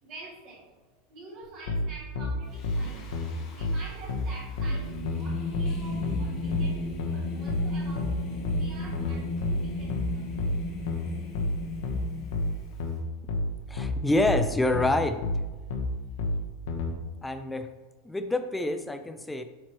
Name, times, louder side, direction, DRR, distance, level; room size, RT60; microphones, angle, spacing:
voice 1, 0.0-3.1 3.5-10.4, right 2 dB, 35° right, -2 dB, 1.6 m, -47 dB
sound 1, 1.7-16.9, left 2 dB, 70° left, 1.0 m, -30 dB
Singing, 2.5-12.9, left 2 dB, 35° left, 0.9 m, -35 dB
voice 2, 13.7-15.2 17.2-17.7 18.0-19.4, left 2 dB, 5° left, 9 dB, 0.3 m, -27 dB
8.7 x 4.5 x 3.0 m, 1.2 s
supercardioid pair, 170°, 0 cm